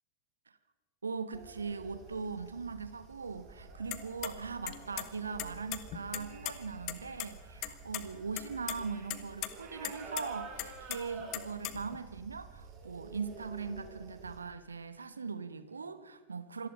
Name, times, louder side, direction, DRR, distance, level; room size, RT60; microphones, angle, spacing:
voice 1, 1.0-16.7, right 5 dB, 75° right, 12 dB, 1.2 m, -40 dB
sound 1, 1.3-14.4, right 4 dB, 35° right, 4.8 m, -50 dB
sound 2, 3.9-4.3 4.7-5.1 5.4-6.5 6.9-7.0 7.2-7.3 7.6-8.0 8.4-8.8 9.1-9.5 9.8-10.2 10.6-12.0, left 16 dB, 40° left, 1.5 m, -37 dB
26.0 x 18.0 x 5.6 m, 1.2 s
figure-of-eight pair, 90°, 0 cm